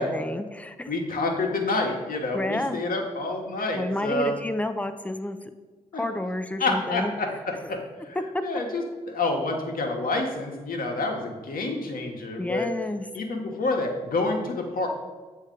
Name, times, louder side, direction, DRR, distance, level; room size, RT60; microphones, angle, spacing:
voice 1, 0.0-0.9 2.3-2.8 3.7-5.4 6.0-7.1 8.3-8.4 12.4-13.0, left 1 dB, 10° left, 9 dB, 0.5 m, -30 dB
voice 2, 0.9-4.3 5.9-6.0 6.6-8.2 8.4-12.7 13.1-14.9, left 2 dB, 60° left, 2 dB, 1.1 m, -28 dB
7.1 x 2.8 x 5.1 m, 1.3 s
supercardioid pair, 40°, 16 cm